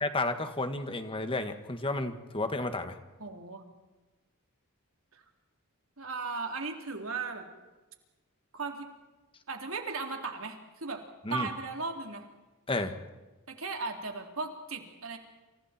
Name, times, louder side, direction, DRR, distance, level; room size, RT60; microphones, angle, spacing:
voice 1, 0.0-3.0 11.2-11.5 12.7-12.9, left 2 dB, 25° left, 8 dB, 2.0 m, -32 dB
voice 2, 3.2-3.6 5.1-5.2 6.0-7.5 8.5-8.9 9.5-11.0 11.3-12.2 13.5-15.2, right 4 dB, 65° right, 3 dB, 3.7 m, -36 dB
29.0 x 28.5 x 4.5 m, 1.2 s
head